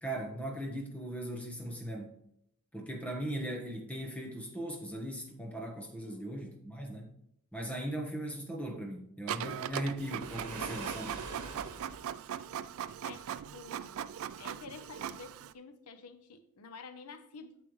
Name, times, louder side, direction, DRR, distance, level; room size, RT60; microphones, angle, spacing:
voice 1, 0.0-2.1 2.7-7.1 7.5-11.2, right 1 dB, 5° left, 1 dB, 1.2 m, -39 dB
Printer, 9.3-15.5, right 9 dB, 65° right, 0.3 m, -40 dB
Waves surf, 10.0-12.1, right 4 dB, 85° right, 1.2 m, -43 dB
voice 2, 13.0-14.1 14.4-17.6, left 4 dB, 85° left, 9 dB, 0.7 m, -50 dB
8.6 x 6.9 x 3.1 m, 0.73 s
head